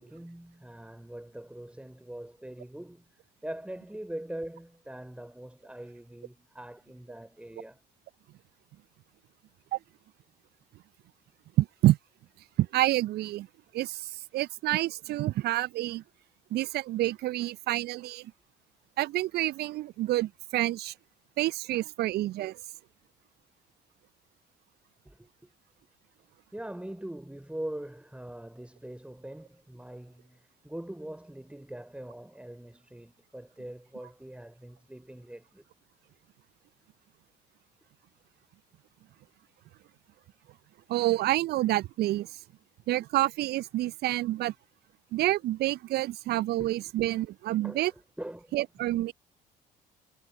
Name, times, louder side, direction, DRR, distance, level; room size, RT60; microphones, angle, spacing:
voice 1, 0.0-3.1 3.4-7.8 25.0-25.5 26.5-35.6 46.6-46.7 47.6-48.6, right 1 dB, 5° right, 4.4 m, -42 dB
voice 2, 11.6-12.0 12.6-13.5 13.7-16.0 16.5-18.3 19.0-20.9 21.4-22.6 40.9-42.3 42.9-44.5 45.1-47.9 48.5-49.1, right 16 dB, 50° right, 0.6 m, -28 dB
figure-of-eight pair, 55°, 21 cm